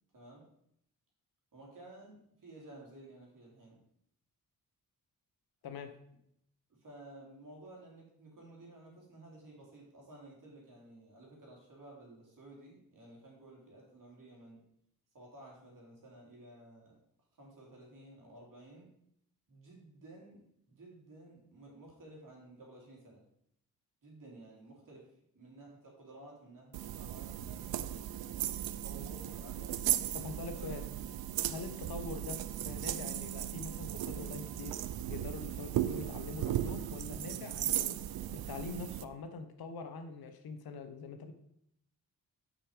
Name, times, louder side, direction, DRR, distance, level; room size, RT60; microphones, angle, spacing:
voice 1, 0.1-0.5 1.5-3.8 6.8-14.6 15.1-17.0 17.4-18.9 19.5-23.2 24.0-27.7 28.3-29.8 30.6-30.7 31.6-31.9, right 2 dB, 60° right, -2 dB, 2.8 m, -54 dB
voice 2, 5.6-5.9 30.1-30.9 31.4-34.8 35.1-38.0 38.3-41.3, left 4 dB, 75° left, 8 dB, 1.0 m, -44 dB
sound 1, 26.7-39.0, right 12 dB, 75° right, 0.5 m, -36 dB
6.0 x 5.5 x 4.8 m, 0.73 s
cardioid pair, 85°, 37 cm